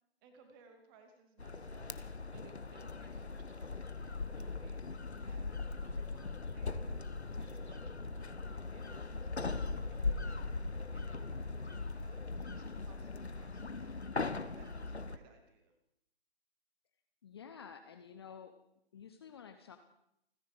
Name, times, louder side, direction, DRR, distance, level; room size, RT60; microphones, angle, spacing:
voice 1, 0.2-1.9 2.3-4.9 5.2-6.8 7.4-10.5 10.9-14.0 14.5-15.7, right 4 dB, 20° right, 6 dB, 2.5 m, -62 dB
sound 1, 1.4-15.2, left 3 dB, 85° left, 1.1 m, -40 dB
voice 2, 17.2-18.5 18.9-19.8, left 7 dB, 25° left, 7 dB, 0.7 m, -51 dB
29.0 x 10.0 x 5.0 m, 0.77 s
figure-of-eight pair, 140°, 32 cm